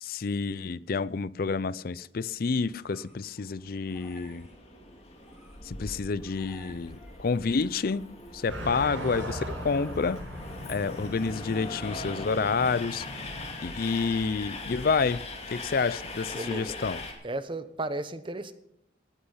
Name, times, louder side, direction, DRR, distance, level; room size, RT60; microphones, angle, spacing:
voice 1, 0.0-4.5 5.6-10.3 10.7-13.1 13.6-17.0, left 4 dB, 50° left, 0.4 m, -29 dB
sound 1, 2.4-13.5, left 1 dB, ahead, 5.0 m, -57 dB
Train, 3.7-17.1, left 2 dB, 35° left, 2.5 m, -41 dB
sound 2, 8.5-13.5, equal, 75° right, 7.1 m, -39 dB
voice 2, 16.3-16.7 17.2-18.5, right 2 dB, 25° right, 0.8 m, -34 dB
18.0 x 8.6 x 5.6 m
head